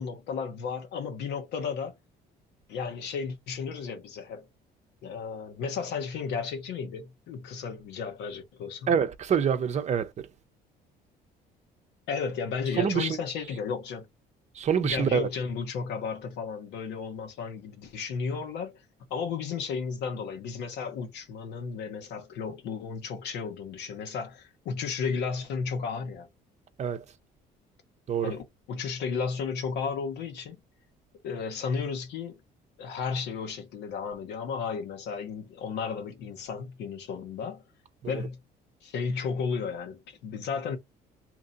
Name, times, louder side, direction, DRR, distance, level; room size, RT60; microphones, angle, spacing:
voice 1, 0.0-1.9 2.7-4.5 5.0-8.9 12.1-14.1 14.8-18.8 19.1-26.3 28.2-30.6 31.2-32.4 32.8-37.6 38.1-38.4 38.8-40.8, left 5 dB, 85° left, 1.0 m, -33 dB
voice 2, 8.9-10.3 12.8-13.2 14.6-15.3 26.8-27.0 28.1-28.3 38.0-38.1, right 7 dB, 45° right, 0.6 m, -26 dB
2.9 x 2.6 x 3.9 m
cardioid pair, 110°, 17 cm